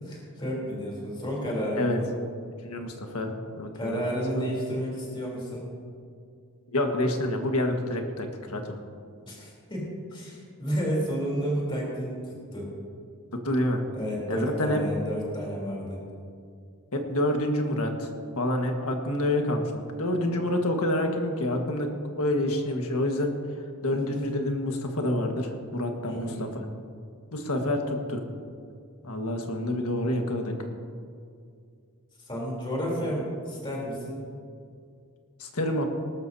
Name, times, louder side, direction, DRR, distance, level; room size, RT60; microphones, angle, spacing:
voice 1, 0.0-2.1 3.7-5.7 9.3-12.7 13.9-16.0 23.9-24.1 26.1-26.4 32.3-34.2, equal, 20° left, -3 dB, 3.5 m, -31 dB
voice 2, 2.6-4.0 4.3-4.4 6.7-8.8 13.4-13.8 14.3-14.8 16.9-21.9 22.2-23.3 23.8-26.5 27.3-28.2 29.0-30.5 35.4-35.8, left 1 dB, 75° left, 3 dB, 1.5 m, -28 dB
19.0 x 13.0 x 2.8 m, 2.3 s
head